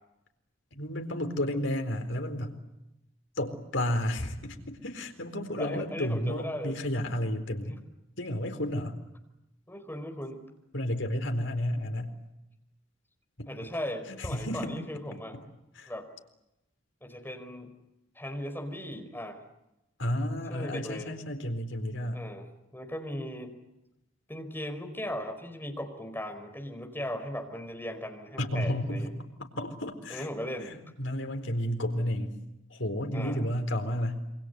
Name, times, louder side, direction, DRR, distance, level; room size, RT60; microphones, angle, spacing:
voice 1, 0.7-2.6 3.4-7.8 8.2-9.0 10.7-12.1 13.4-13.7 14.2-14.7 15.1-15.2 15.8-15.9 20.0-22.3 28.4-29.1 29.4-30.3 31.0-32.3 32.7-34.2, left 1 dB, 70° left, 6 dB, 4.2 m, -32 dB
voice 2, 5.6-6.8 7.7-7.8 9.7-10.4 13.5-15.4 15.9-16.1 17.0-17.7 18.1-19.4 20.5-21.1 22.1-22.5 22.7-23.6 24.3-29.1 30.1-30.7 33.1-33.4, equal, 10° left, 5 dB, 4.6 m, -37 dB
27.5 x 25.5 x 8.1 m, 0.91 s
head